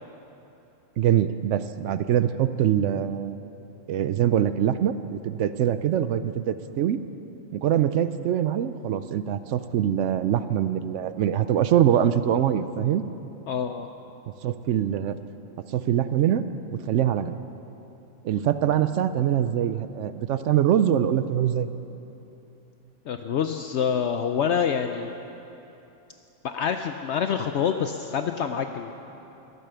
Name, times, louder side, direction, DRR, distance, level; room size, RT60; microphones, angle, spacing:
voice 1, 1.0-3.4 3.9-7.0 7.5-13.0 14.4-15.2 15.7-16.4 16.9-17.4 18.2-21.7, right 10 dB, 70° right, 12 dB, 0.8 m, -23 dB
voice 2, 13.5-13.9 23.1-25.1 26.4-28.9, left 7 dB, 65° left, 7 dB, 0.8 m, -26 dB
14.5 x 12.5 x 6.8 m, 2.9 s
omnidirectional pair, 1.4 m